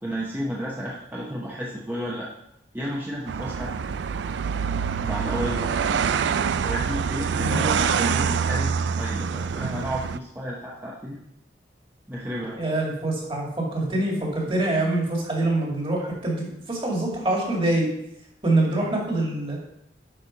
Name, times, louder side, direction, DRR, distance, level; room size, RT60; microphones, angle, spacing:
voice 1, 0.0-2.3 2.7-3.7 5.0-6.1 6.6-11.2 12.1-12.6, equal, 10° right, -5 dB, 0.9 m, -32 dB
sound 1, 3.3-10.2, right 6 dB, 80° right, 0.4 m, -25 dB
voice 2, 12.6-17.9 18.4-19.6, right 2 dB, 30° right, -2 dB, 2.3 m, -25 dB
9.8 x 4.3 x 5.2 m, 0.79 s
head